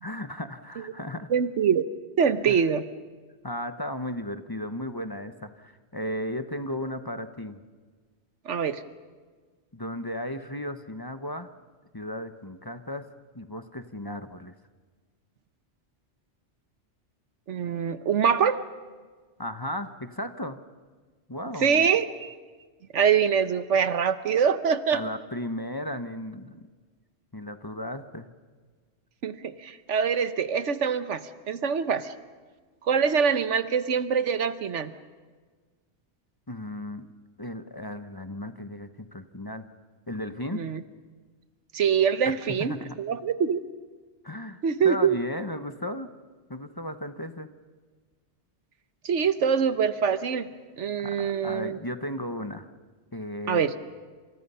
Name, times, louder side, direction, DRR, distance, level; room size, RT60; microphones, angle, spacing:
voice 1, 0.0-1.3 2.4-2.7 3.4-7.6 9.7-11.5 11.9-13.1 13.3-14.5 19.4-20.6 21.3-21.9 24.9-26.7 27.3-28.3 36.5-37.1 37.4-39.7 40.1-40.6 42.2-43.0 44.2-46.1 46.5-47.5 51.0-52.7 53.1-53.6, left 1 dB, 20° left, 9 dB, 0.9 m, -35 dB
voice 2, 1.3-1.8 2.2-2.8 8.5-8.8 17.5-18.6 21.6-22.3 22.9-25.0 29.2-32.1 32.9-34.9 40.5-40.8 41.7-43.6 44.6-45.2 49.0-50.5 50.8-51.8 53.5-53.7, right 7 dB, 90° right, 11 dB, 1.4 m, -24 dB
29.0 x 27.5 x 5.6 m, 1.5 s
omnidirectional pair, 1.2 m